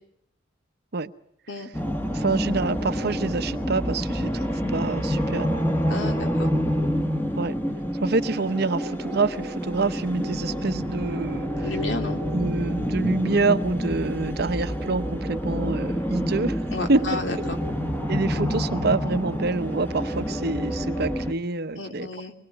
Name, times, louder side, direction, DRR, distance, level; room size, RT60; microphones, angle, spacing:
sound 1, 1.7-21.3, equal, 10° left, 1.7 m, -27 dB
voice 1, 2.1-5.7 7.4-7.5 7.9-11.8 12.2-17.2 18.1-22.1, right 3 dB, 60° right, 0.9 m, -27 dB
voice 2, 5.9-6.5 11.6-12.2 16.7-17.6 21.8-22.3, left 2 dB, 70° left, 2.9 m, -32 dB
24.5 x 21.5 x 8.4 m
head